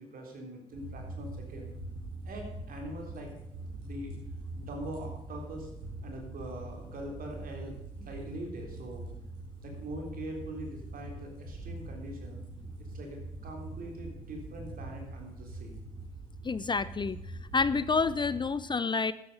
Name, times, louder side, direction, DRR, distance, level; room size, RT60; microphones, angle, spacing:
voice 1, 0.0-1.7 2.2-3.3 3.8-4.1 4.6-5.7 6.0-9.1 9.6-12.4 12.8-15.8, right 1 dB, 60° right, 2 dB, 3.5 m, -43 dB
sound 1, 0.7-18.4, right 2 dB, 80° right, 5.2 m, -43 dB
voice 2, 16.4-17.2 17.5-19.1, left 4 dB, 25° left, 17 dB, 0.5 m, -28 dB
12.5 x 10.5 x 5.5 m, 0.87 s
hypercardioid pair, 40°, 17 cm